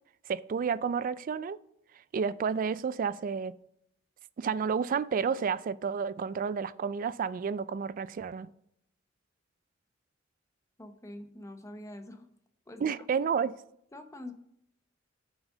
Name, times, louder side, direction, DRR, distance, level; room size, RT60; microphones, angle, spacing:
voice 1, 0.3-1.6 2.1-3.6 4.4-8.5 12.8-13.5, right 6 dB, 45° right, 0.3 m, -31 dB
voice 2, 10.8-12.3 12.7-13.1 13.9-14.3, left 1 dB, 15° left, 0.8 m, -45 dB
7.3 x 6.3 x 5.0 m
head